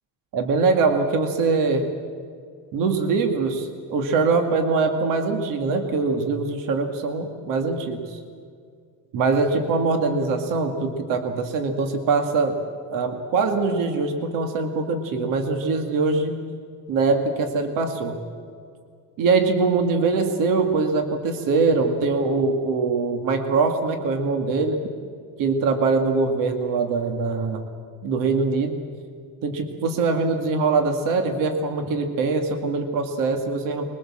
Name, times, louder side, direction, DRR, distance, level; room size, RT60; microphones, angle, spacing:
voice 1, 0.3-1.9 2.7-8.2 9.1-12.6 12.9-16.4 16.9-18.2 19.2-24.8 25.4-27.7 28.0-28.8 29.4-33.8, right 4 dB, 65° right, 5 dB, 2.2 m, -23 dB
24.0 x 22.0 x 7.5 m, 2.2 s
cardioid pair, 155°, 35 cm